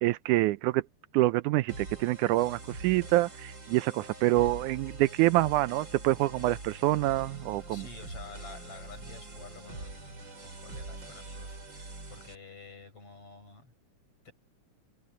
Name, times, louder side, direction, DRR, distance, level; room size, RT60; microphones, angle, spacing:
voice 1, 0.0-0.8 1.1-7.8, right 17 dB, 80° right, 2.0 m, -26 dB
sound 1, 1.7-12.3, right 2 dB, 35° right, 5.8 m, -44 dB
voice 2, 7.7-13.7 14.3-14.4, left 4 dB, 45° left, 8.9 m, -50 dB
omnidirectional pair, 3.6 m